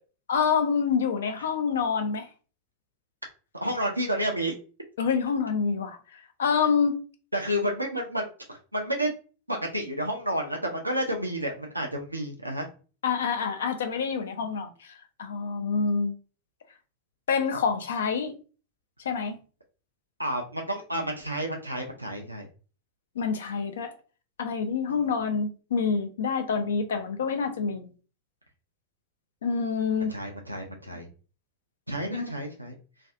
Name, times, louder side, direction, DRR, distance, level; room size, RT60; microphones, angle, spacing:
voice 1, 0.3-2.3 5.0-6.0 6.4-7.0 13.0-14.7 15.2-16.2 17.3-18.3 19.1-19.4 23.2-23.9 24.4-27.9 29.4-30.1 32.1-32.3, left 6 dB, 65° left, 0.4 m, -27 dB
voice 2, 3.6-4.5 7.3-9.1 9.5-12.7 20.2-22.5 30.1-31.1 31.9-32.7, equal, 85° right, 0.4 m, -30 dB
2.4 x 2.3 x 2.5 m
figure-of-eight pair, 90°, 0 cm